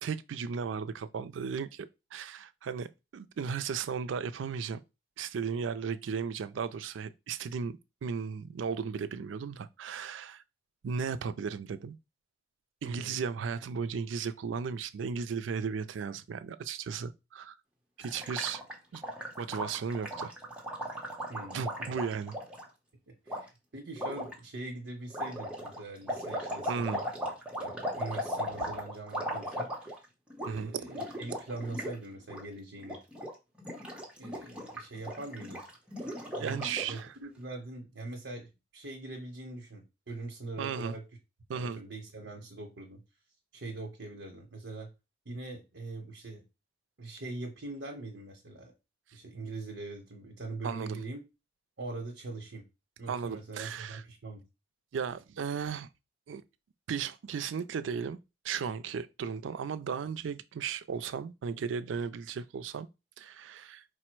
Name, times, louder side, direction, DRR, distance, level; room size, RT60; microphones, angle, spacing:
voice 1, 0.0-4.8 5.2-10.4 10.8-12.0 12.8-17.6 18.0-18.6 18.9-19.0 19.4-20.3 21.5-22.4 26.7-27.0 30.4-30.7 36.4-37.1 40.6-41.0 41.5-41.8 50.6-51.0 53.1-54.0 54.9-55.9 56.3-56.4 56.9-58.2 58.4-62.9 63.2-63.8, right 6 dB, 90° right, 0.4 m, -35 dB
voice 2, 12.8-13.2 21.3-21.9 23.1-27.1 27.6-30.0 30.5-33.0 34.2-35.6 36.4-41.0 41.5-43.0 43.5-44.9 45.2-46.4 47.0-48.7 49.1-51.2 51.8-52.7 53.0-54.4, right 2 dB, 70° right, 0.8 m, -42 dB
Gurgling, 18.0-22.6 23.3-23.4 24.0-24.3 25.1-30.1 30.3-30.5 30.8-32.0 32.2-32.4 32.8-33.3 33.6-37.0, equal, 5° right, 0.9 m, -37 dB
4.7 x 2.1 x 4.4 m
head